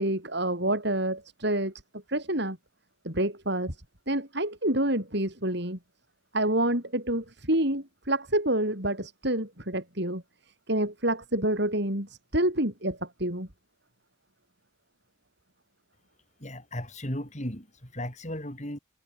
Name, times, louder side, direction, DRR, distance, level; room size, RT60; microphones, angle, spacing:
voice 1, 0.0-1.7 2.1-2.6 3.0-3.8 4.1-5.8 6.3-10.2 10.7-13.5, right 1 dB, 55° right, 7.7 m, -28 dB
voice 2, 16.4-18.8, left 1 dB, 35° left, 7.9 m, -36 dB
head